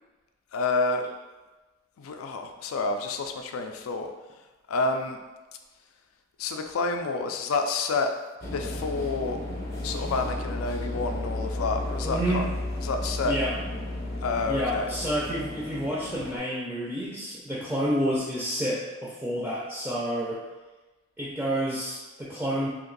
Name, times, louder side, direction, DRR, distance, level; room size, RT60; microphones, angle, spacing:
voice 1, 0.5-1.1 2.0-4.1 4.7-5.2 6.4-8.1 8.5-9.4 9.8-12.5 12.8-13.4 14.2-14.9, left 3 dB, 90° left, 5 dB, 0.4 m, -29 dB
sound 1, 8.4-16.4, left 1 dB, 45° left, 0.7 m, -33 dB
voice 2, 12.0-12.4 13.2-13.5 14.5-20.4 21.2-22.7, equal, 10° right, -6 dB, 0.4 m, -29 dB
2.9 x 2.5 x 3.9 m, 1.2 s
head